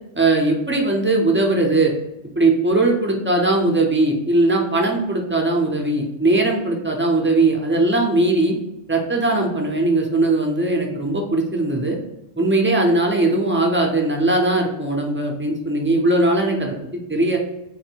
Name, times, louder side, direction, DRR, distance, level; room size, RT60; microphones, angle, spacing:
voice 1, 0.2-1.9 2.4-8.6 8.9-12.0 12.4-17.4, right 2 dB, 20° right, 0 dB, 0.3 m, -19 dB
4.0 x 2.1 x 4.4 m, 0.91 s
omnidirectional pair, 1.1 m